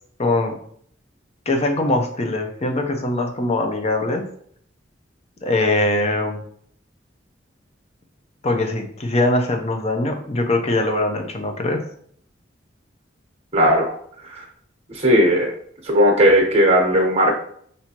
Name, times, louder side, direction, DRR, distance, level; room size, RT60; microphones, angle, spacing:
voice 1, 0.2-0.5 1.5-4.2 5.4-6.4 8.4-11.8, left 2 dB, 35° left, 4 dB, 0.6 m, -22 dB
voice 2, 13.5-13.9 14.2-14.4 14.9-15.5 15.8-17.3, equal, 30° right, 0 dB, 1.1 m, -16 dB
5.8 x 2.7 x 2.9 m, 0.63 s
head